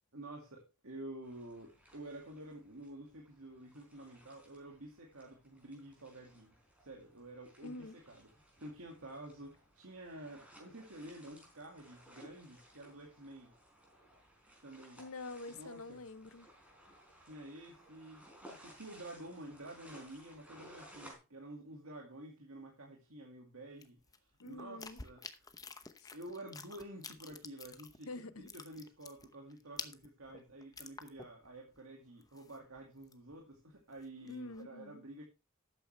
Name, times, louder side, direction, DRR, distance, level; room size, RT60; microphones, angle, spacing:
voice 1, 0.1-13.5 14.6-15.0 15.5-16.0 17.2-25.5 26.1-28.1 28.4-35.2, right 1 dB, 75° right, 2.2 m, -50 dB
sound 1, 1.2-21.1, equal, 5° right, 4.3 m, -60 dB
voice 2, 7.6-8.0 15.0-16.5 24.4-25.0 26.0-26.1 28.1-28.5 34.3-35.0, left 2 dB, 75° left, 0.7 m, -46 dB
sound 2, 23.8-28.2 28.4-31.5 31.8-31.9 32.2-33.4 33.8-34.6, left 4 dB, 15° left, 0.8 m, -50 dB
12.5 x 8.9 x 3.3 m
head